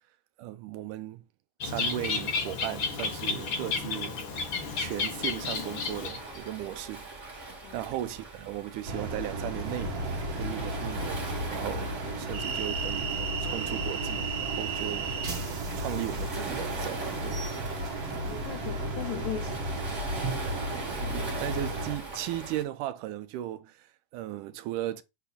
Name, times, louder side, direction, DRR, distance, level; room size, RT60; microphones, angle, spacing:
voice 1, 0.4-1.2 1.6-4.2 4.8-7.1 7.7-11.2 11.5-15.1 15.8-17.4 21.0-25.0, right 13 dB, 80° right, 2.0 m, -36 dB
Bird, 1.6-6.4, left 4 dB, 60° left, 1.3 m, -32 dB
Waves surf, 4.3-22.6, right 2 dB, 20° right, 2.6 m, -41 dB
sound 1, 8.9-22.0, right 2 dB, 50° right, 2.4 m, -33 dB
voice 2, 18.1-20.3, left 11 dB, 85° left, 1.6 m, -39 dB
8.3 x 4.1 x 4.1 m
omnidirectional pair, 4.0 m